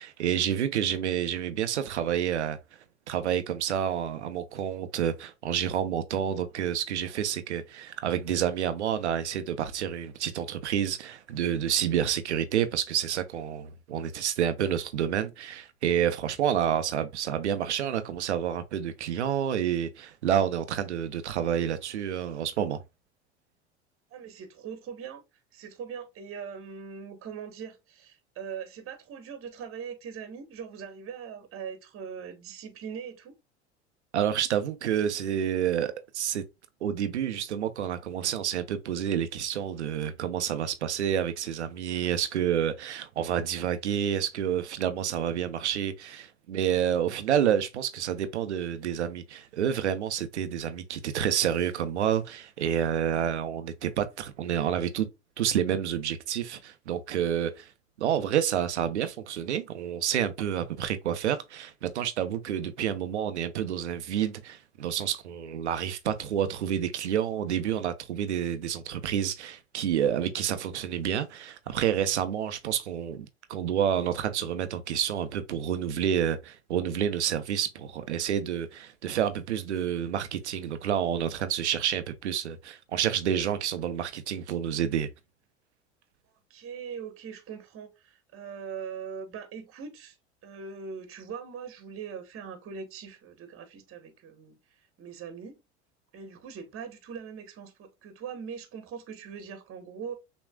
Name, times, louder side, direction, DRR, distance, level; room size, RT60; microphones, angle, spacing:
voice 1, 0.0-2.6 3.1-22.8 34.1-36.4 36.8-55.1 55.4-57.7 58.0-85.1, right 9 dB, 85° right, 0.8 m, -29 dB
voice 2, 24.1-25.2 25.5-33.3 86.5-90.2 90.4-94.6 95.0-95.6 96.1-100.1, right 6 dB, 40° right, 1.3 m, -41 dB
6.1 x 3.1 x 2.3 m
hypercardioid pair, 75°, 34 cm